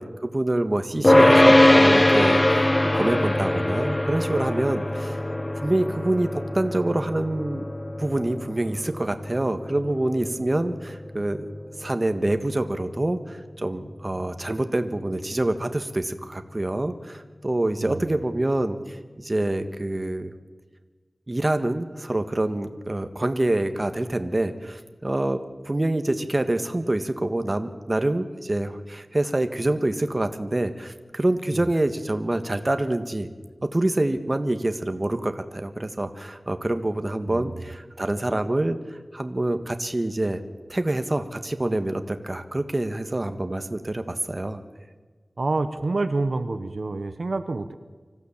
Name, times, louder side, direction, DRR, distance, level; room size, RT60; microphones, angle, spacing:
voice 1, 0.0-5.2 5.6-7.6 8.0-11.4 11.8-20.3 21.3-25.4 25.6-33.3 33.7-40.4 40.7-44.6, right 1 dB, 35° right, 8 dB, 1.4 m, -26 dB
sound 1, 1.0-12.4, left 1 dB, 25° left, 0.6 m, -21 dB
voice 2, 17.8-18.1 31.5-31.7 37.3-37.6 45.4-47.7, right 3 dB, 75° right, 9 dB, 1.0 m, -28 dB
25.0 x 15.0 x 7.3 m, 1.4 s
wide cardioid pair, 70°, 0 cm